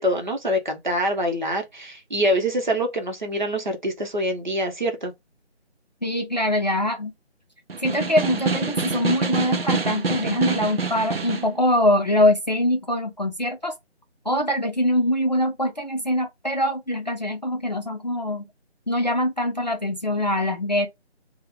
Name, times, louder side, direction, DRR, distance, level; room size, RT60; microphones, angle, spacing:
voice 1, 0.0-5.1, equal, 40° right, 1.0 m, -25 dB
voice 2, 6.0-7.1 7.8-13.7 14.2-18.5 18.9-20.9, left 1 dB, 40° left, 0.6 m, -23 dB
Snare drum, 7.7-11.5, right 4 dB, 60° right, 0.6 m, -26 dB
3.7 x 2.2 x 3.1 m
figure-of-eight pair, 175°, 34 cm